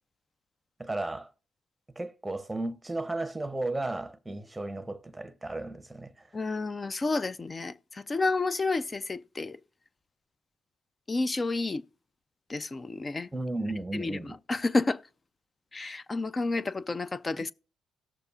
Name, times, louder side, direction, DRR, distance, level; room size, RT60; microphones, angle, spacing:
voice 1, 0.8-1.3 2.0-6.3 13.3-14.3, right 2 dB, 15° right, 0.8 m, -34 dB
voice 2, 6.3-9.6 11.1-11.8 12.5-13.3 13.9-15.0 15.7-17.5, left 3 dB, 30° left, 0.4 m, -30 dB
18.0 x 6.8 x 2.4 m
cardioid pair, 75°, 0 cm